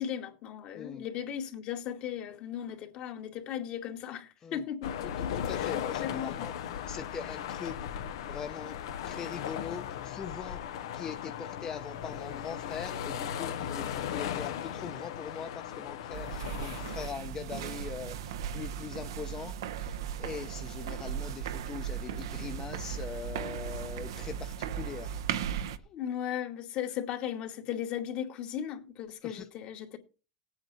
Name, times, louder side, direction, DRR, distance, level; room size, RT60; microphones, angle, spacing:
voice 1, 0.0-5.0 5.5-5.7 6.0-6.5 25.9-30.0, left 9 dB, 55° left, 2.2 m, -37 dB
sound 1, 4.8-17.1, left 9 dB, 80° left, 1.0 m, -37 dB
voice 2, 5.5-6.5 6.9-7.7 8.3-8.8 9.0-10.6 10.9-18.1 18.5-19.5 20.2-25.1, left 7 dB, 30° left, 0.9 m, -41 dB
sound 2, 16.1-25.8, right 8 dB, 85° right, 0.9 m, -37 dB
17.5 x 8.8 x 4.3 m
hypercardioid pair, 100°, 2 cm